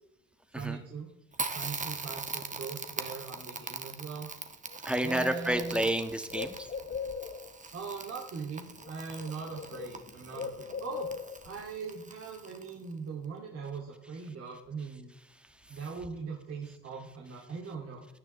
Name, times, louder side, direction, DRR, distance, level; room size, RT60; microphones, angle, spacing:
voice 1, 0.5-1.1 1.5-4.3 5.0-5.8 7.7-11.1 11.4-15.1 15.7-18.1, right 5 dB, 50° right, -2 dB, 2.6 m, -40 dB
Crackle, 1.3-12.9, right 4 dB, 25° right, 1.5 m, -42 dB
Bird, 4.7-4.8 5.1-7.6 8.7-8.9 9.2-11.6, left 6 dB, 35° left, 1.6 m, -40 dB
voice 2, 4.8-6.7 15.3-15.8, right 1 dB, 5° right, 7 dB, 1.7 m, -31 dB
17.0 x 9.8 x 3.3 m, 0.89 s
supercardioid pair, 65°, 31 cm